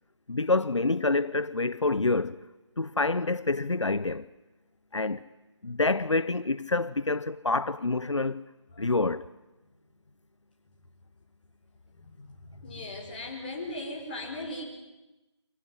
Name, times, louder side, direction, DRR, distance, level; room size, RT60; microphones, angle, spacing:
voice 1, 0.3-2.4 2.8-4.3 4.9-5.2 5.6-8.4 8.8-9.3, left 3 dB, 75° left, 0.8 m, -27 dB
voice 2, 11.9-14.6, left 2 dB, 20° left, 4.5 m, -38 dB
26.0 x 17.5 x 9.8 m
figure-of-eight pair, 165°, 15 cm